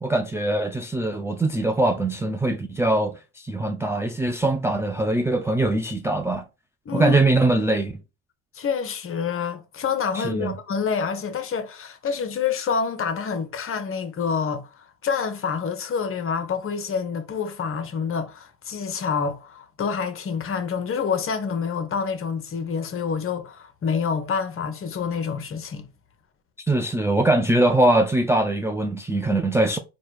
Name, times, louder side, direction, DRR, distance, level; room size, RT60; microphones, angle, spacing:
voice 1, 0.0-6.4 6.9-7.9 10.1-10.5 26.7-29.8, right 2 dB, 5° right, 0.4 m, -22 dB
voice 2, 6.9-7.2 8.5-25.9, left 6 dB, 35° left, 0.9 m, -27 dB
4.3 x 2.3 x 4.6 m
hypercardioid pair, 75°, 37 cm